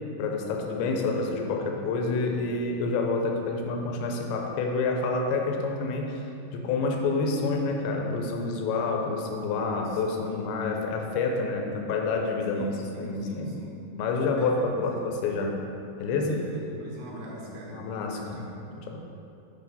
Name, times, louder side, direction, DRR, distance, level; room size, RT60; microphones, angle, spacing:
voice 1, 0.2-6.2 6.5-13.6 14.0-15.7 16.0-16.4 17.7-18.5 18.8-19.0, left 3 dB, 80° left, 2 dB, 2.5 m, -28 dB
voice 2, 9.8-10.8 12.5-13.8 14.4-15.0 16.3-18.4, right 1 dB, 75° right, -3 dB, 2.8 m, -43 dB
9.7 x 3.9 x 4.1 m, 2.7 s
omnidirectional pair, 4.5 m